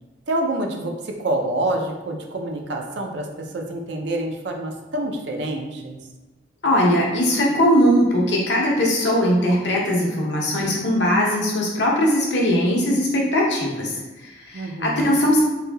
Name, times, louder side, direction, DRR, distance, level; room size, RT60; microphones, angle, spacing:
voice 1, 0.3-6.0 14.5-15.2, right 1 dB, 70° right, 2 dB, 0.4 m, -27 dB
voice 2, 6.6-13.9 14.2-15.4, equal, 75° left, -3 dB, 0.8 m, -20 dB
3.3 x 2.6 x 2.2 m, 1.1 s
head